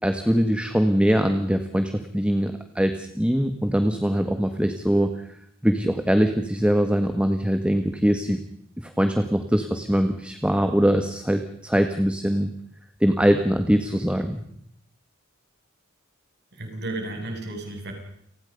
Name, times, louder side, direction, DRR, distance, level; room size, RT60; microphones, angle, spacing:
voice 1, 0.0-5.1 5.6-8.4 8.8-12.5 13.0-14.4, equal, 5° right, 7 dB, 1.6 m, -22 dB
voice 2, 16.5-17.9, right 2 dB, 55° right, 3 dB, 7.8 m, -33 dB
29.5 x 20.0 x 5.4 m, 0.69 s
head